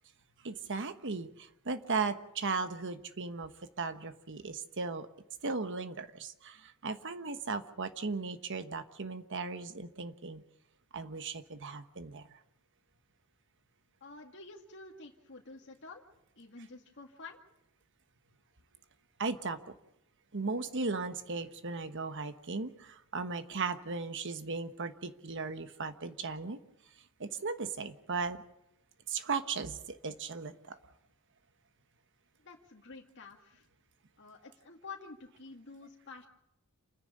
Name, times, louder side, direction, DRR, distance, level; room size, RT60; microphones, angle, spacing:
voice 1, 0.4-5.1 5.4-10.4 10.9-12.2 19.2-19.6 20.3-26.6 27.2-28.4 29.1-30.8, right 4 dB, 55° right, 9 dB, 1.3 m, -37 dB
voice 2, 14.0-16.0 16.4-17.4 32.4-33.7 34.2-36.3, left 3 dB, 55° left, 0 dB, 2.1 m, -49 dB
28.5 x 10.5 x 9.8 m, 0.88 s
head